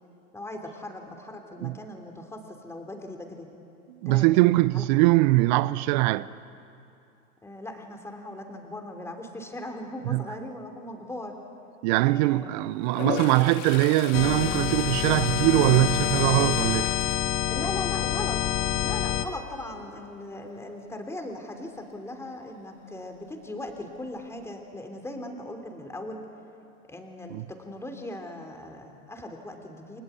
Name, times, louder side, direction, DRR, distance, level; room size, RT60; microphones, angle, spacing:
voice 1, 0.3-3.5 4.0-4.3 4.7-4.8 7.4-11.4 11.9-12.6 17.5-26.3 26.9-30.0, left 1 dB, 5° left, 3.2 m, -39 dB
voice 2, 3.9-6.3 10.1-10.2 11.8-16.9 27.3-27.4, right 19 dB, 30° right, 0.6 m, -22 dB
Toilet flush, 12.9-18.1 18.5-18.8 23.3-23.4 23.7-24.4, left 9 dB, 50° left, 2.2 m, -37 dB
sound 1, 14.1-19.3, left 11 dB, 30° left, 1.1 m, -27 dB
30.0 x 23.5 x 8.3 m
hypercardioid pair, 125°, 45 cm